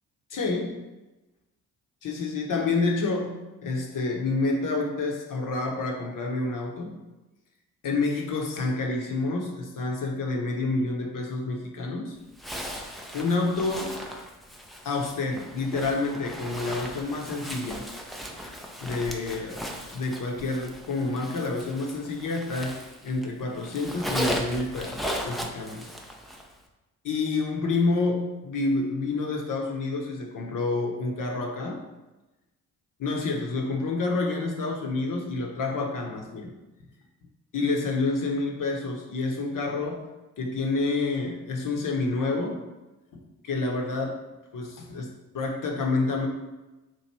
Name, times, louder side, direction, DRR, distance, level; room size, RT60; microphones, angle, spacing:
voice 1, 0.3-0.8 2.0-7.0 7.8-12.2 13.1-14.0 14.8-17.8 18.8-19.6 19.9-25.9 27.0-31.8 33.0-36.5 37.5-40.1 40.4-42.6 43.1-44.2 44.5-46.3, left 3 dB, 45° left, 0 dB, 0.9 m, -28 dB
Zipper (clothing), 12.4-23.3 23.6-26.5, equal, ahead, 0.5 m, -37 dB
3.0 x 2.5 x 4.3 m, 1.1 s
hypercardioid pair, 40°, 44 cm